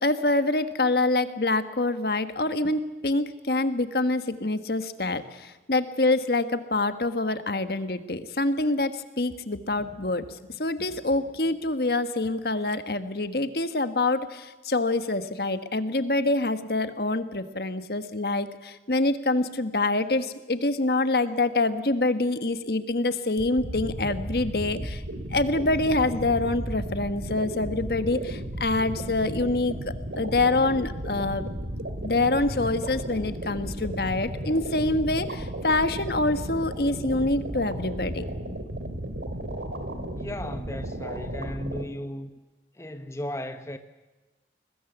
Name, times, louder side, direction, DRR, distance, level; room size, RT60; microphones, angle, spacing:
voice 1, 0.0-25.0 25.3-31.5 32.0-38.2, left 2 dB, 60° left, 1.5 m, -26 dB
sound 1, 23.4-41.8, right 1 dB, 85° right, 2.9 m, -34 dB
voice 2, 40.1-42.3 42.7-43.8, left 1 dB, 15° left, 1.0 m, -35 dB
22.5 x 21.0 x 8.1 m
head